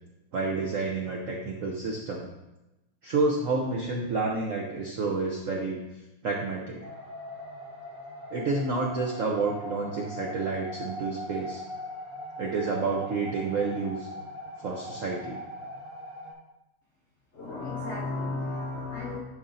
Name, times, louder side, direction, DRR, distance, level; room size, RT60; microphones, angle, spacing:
voice 1, 0.3-2.3 3.0-5.8 6.2-6.8 8.3-11.6 12.4-14.1 14.6-15.4, right 3 dB, 75° right, -1 dB, 0.7 m, -29 dB
sound 1, 6.8-16.3, left 1 dB, 45° right, 2.1 m, -41 dB
voice 2, 17.3-19.2, left 3 dB, 65° left, -3 dB, 0.6 m, -33 dB
11.0 x 4.4 x 2.6 m, 0.99 s
omnidirectional pair, 2.3 m